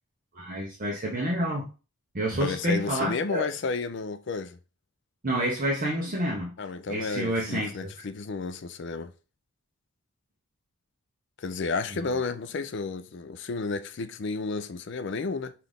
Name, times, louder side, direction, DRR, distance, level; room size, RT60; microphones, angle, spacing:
voice 1, 0.3-1.7 2.1-3.5 5.2-6.5 6.9-7.7 11.9-12.1, right 1 dB, 40° right, 0.8 m, -28 dB
voice 2, 2.4-4.6 6.6-9.1 11.4-15.5, left 4 dB, 55° left, 0.4 m, -32 dB
5.8 x 2.5 x 3.4 m
head